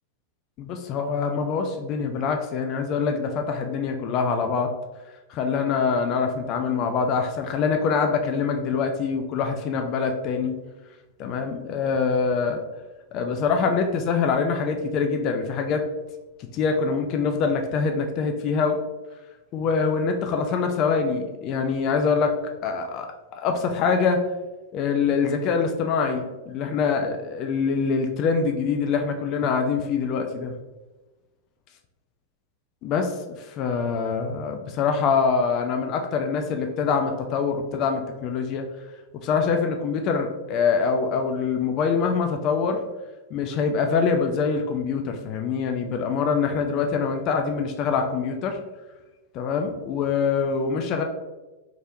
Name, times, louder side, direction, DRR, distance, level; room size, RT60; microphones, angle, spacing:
voice 1, 0.6-4.7 5.3-10.6 11.2-12.6 13.1-15.8 16.5-18.8 19.5-22.4 22.6-23.1 23.4-24.2 24.7-30.5 32.8-33.1 33.6-38.7 39.2-42.8 43.3-48.6 49.3-51.0, left 5 dB, 40° left, 5 dB, 0.4 m, -24 dB
3.6 x 3.1 x 2.7 m, 1.1 s
figure-of-eight pair, 90°, 0 cm